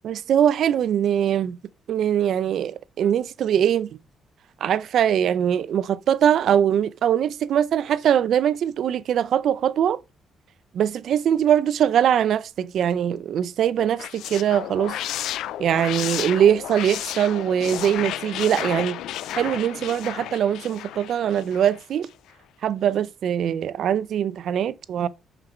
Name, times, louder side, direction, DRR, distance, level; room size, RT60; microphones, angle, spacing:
voice 1, 0.0-1.6 1.9-4.0 4.6-10.0 10.7-15.0 15.6-19.0 19.3-22.1 22.6-25.1, right 9 dB, 70° right, 0.5 m, -22 dB
sound 1, 13.8-21.8, left 12 dB, 85° left, 0.3 m, -32 dB
5.8 x 4.6 x 4.9 m
cardioid pair, 90°, 0 cm